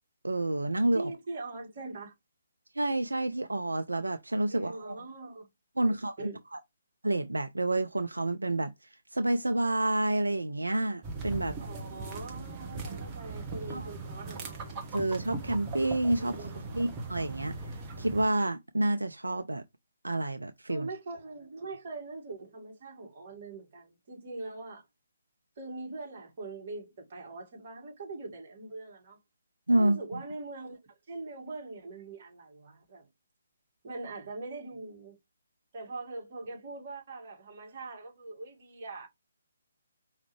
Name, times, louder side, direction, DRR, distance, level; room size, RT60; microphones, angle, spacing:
voice 1, 0.2-1.1 2.8-5.0 5.8-6.6 7.0-11.6 13.7-13.9 14.9-16.3 16.7-17.5 18.0-19.6 20.0-20.9 29.7-30.2, right 1 dB, 85° right, 0.6 m, -29 dB
voice 2, 0.9-2.1 4.5-5.5 5.8-6.4 11.6-14.6 16.2-16.7 20.7-24.8 25.6-29.2 29.7-30.8 31.1-33.1 33.8-35.2 35.7-39.1, right 3 dB, 45° right, 2.2 m, -42 dB
sound 1, 11.0-18.3, right 3 dB, 20° right, 1.3 m, -39 dB
5.0 x 3.2 x 3.2 m
figure-of-eight pair, 140°, 0 cm